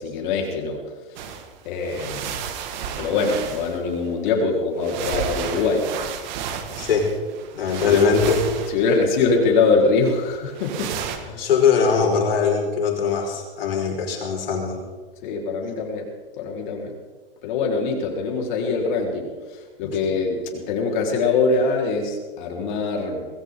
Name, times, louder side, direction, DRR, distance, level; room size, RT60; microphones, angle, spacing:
voice 1, 0.0-1.3 1.6-2.4 3.0-5.9 7.8-8.2 8.7-11.5 12.0-12.2 15.2-16.0 16.4-16.9 17.4-23.3, left 4 dB, 55° left, 0 dB, 4.6 m, -23 dB
sound 1, 1.2-1.5 1.7-4.1 4.8-9.4 10.5-11.2, right 7 dB, 50° right, 2.1 m, -32 dB
voice 2, 6.8-7.1 7.5-8.4 11.4-14.8, left 6 dB, 80° left, 0 dB, 5.3 m, -21 dB
20.5 x 16.5 x 3.9 m, 1.4 s
hypercardioid pair, 135°, 29 cm